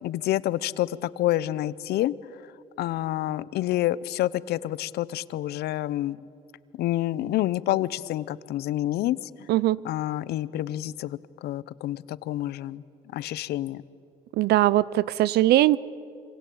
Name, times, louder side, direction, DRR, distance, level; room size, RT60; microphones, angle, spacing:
voice 1, 0.0-2.1 2.8-6.2 6.8-9.2 9.8-12.8 13.1-13.8, left 14 dB, 75° left, 19 dB, 0.8 m, -28 dB
voice 2, 9.5-9.8 14.4-15.8, right 15 dB, 75° right, 21 dB, 0.7 m, -20 dB
27.0 x 26.0 x 8.6 m, 2.5 s
cardioid pair, 110°, 17 cm